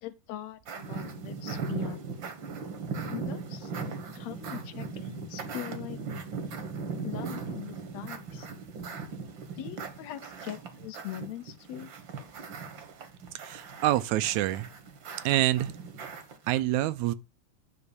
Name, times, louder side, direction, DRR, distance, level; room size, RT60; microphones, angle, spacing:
voice 1, 0.0-2.0 3.1-3.7 4.1-6.0 7.0-8.5 9.6-11.9, left 13 dB, 80° left, 1.7 m, -41 dB
sound 1, 0.7-16.6, right 4 dB, 50° right, 1.6 m, -38 dB
voice 2, 13.4-14.7 15.3-15.7 16.5-17.1, right 15 dB, 80° right, 2.0 m, -26 dB
9.8 x 3.8 x 7.0 m
omnidirectional pair, 3.4 m